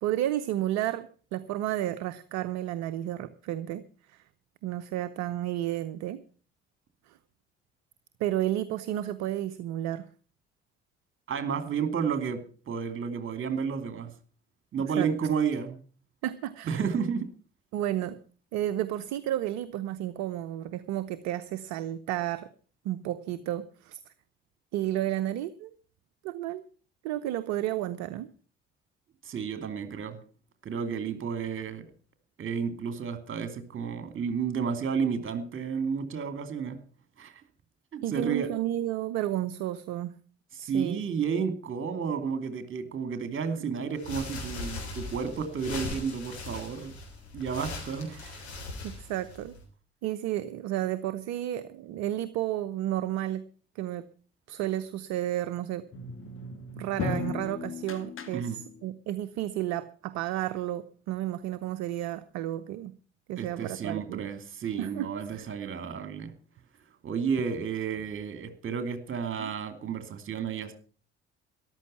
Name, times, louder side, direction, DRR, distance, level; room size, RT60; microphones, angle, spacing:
voice 1, 0.0-3.8 4.1-4.2 4.6-6.2 7.1-7.2 8.2-10.0 15.0-15.1 16.2-16.8 17.7-18.2 18.5-22.5 22.8-24.0 24.7-25.7 26.2-26.6 27.0-28.3 38.0-40.2 40.6-41.0 43.6-43.7 48.8-49.5 50.0-53.4 53.7-54.1 54.5-55.9 56.8-62.9 63.3-64.2 64.8-65.4 69.4-69.5, right 13 dB, 60° right, 13 dB, 0.8 m, -32 dB
voice 2, 11.3-14.1 14.7-15.8 16.6-17.3 29.2-30.2 30.6-31.8 32.4-36.8 37.2-37.4 37.9-38.5 40.5-46.9 47.3-48.4 58.3-58.6 63.4-66.3 67.0-70.7, right 6 dB, 40° right, 9 dB, 2.7 m, -31 dB
sound 1, 43.9-49.6, left 3 dB, 80° left, 3.5 m, -40 dB
sound 2, 55.9-58.9, left 3 dB, 40° left, 2.3 m, -36 dB
13.5 x 11.5 x 5.6 m, 0.40 s
figure-of-eight pair, 50°, 32 cm